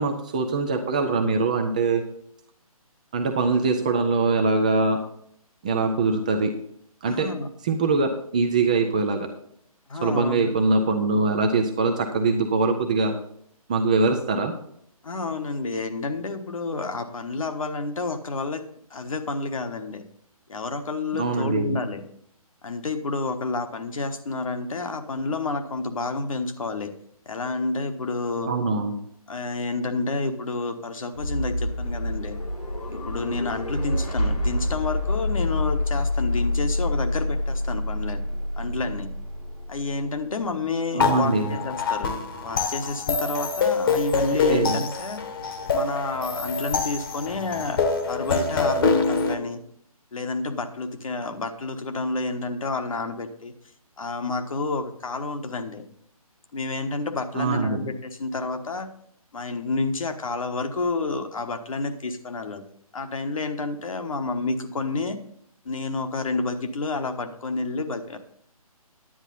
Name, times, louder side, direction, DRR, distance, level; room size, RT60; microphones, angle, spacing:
voice 1, 0.0-2.0 3.1-5.0 5.6-6.5 7.0-7.3 7.6-9.3 10.0-13.2 13.7-14.5 21.1-21.8 28.5-28.9 40.9-41.5 44.5-44.8 57.3-57.9, right 3 dB, 15° right, 5 dB, 0.3 m, -23 dB
voice 2, 7.0-7.5 9.9-10.5 15.0-18.6 18.9-20.0 20.5-22.0 22.6-26.9 27.2-28.5 29.3-32.4 32.9-38.2 38.6-39.1 39.7-42.1 42.4-45.2 45.7-49.6 50.1-53.5 54.0-55.8 56.5-58.9 59.3-62.6 62.9-65.2 65.6-68.2, left 3 dB, 60° left, 7 dB, 1.3 m, -29 dB
sound 1, 31.1-47.1, left 1 dB, 85° left, 2.0 m, -29 dB
sound 2, 41.0-49.3, left 5 dB, 35° left, 1.1 m, -25 dB
10.0 x 9.0 x 4.0 m, 0.69 s
figure-of-eight pair, 145°, 19 cm